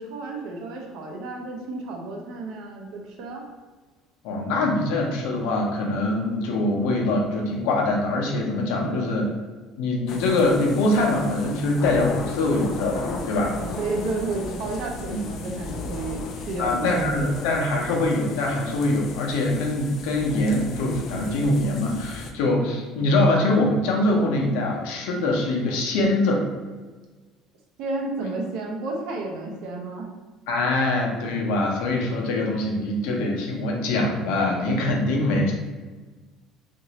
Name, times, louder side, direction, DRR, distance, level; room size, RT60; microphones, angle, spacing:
voice 1, 0.0-3.4 8.8-9.3 13.6-17.7 27.8-30.1, right 2 dB, 60° right, 1 dB, 0.6 m, -32 dB
voice 2, 4.2-9.3 9.8-13.5 15.1-15.2 16.6-26.4 30.5-35.5, left 2 dB, 85° left, 0 dB, 0.7 m, -23 dB
sound 1, 10.1-22.3, left 3 dB, 40° left, 0.3 m, -35 dB
2.9 x 2.6 x 2.8 m, 1.3 s
cardioid pair, 165°, 0 cm